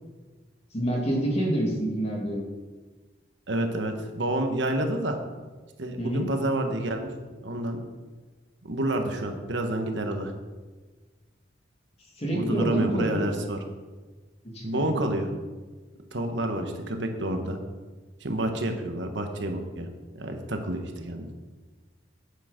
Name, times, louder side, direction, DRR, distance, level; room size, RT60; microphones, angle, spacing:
voice 1, 0.7-2.5 6.0-6.3 12.2-13.3 14.4-14.9, right 1 dB, 35° left, -2 dB, 2.4 m, -27 dB
voice 2, 3.5-5.2 5.8-7.1 7.4-7.8 8.7-10.3 12.3-13.6 14.6-15.3 16.1-17.6 18.2-19.9 20.1-21.3, right 1 dB, 70° right, 5 dB, 1.2 m, -29 dB
8.8 x 8.1 x 5.1 m, 1.3 s
head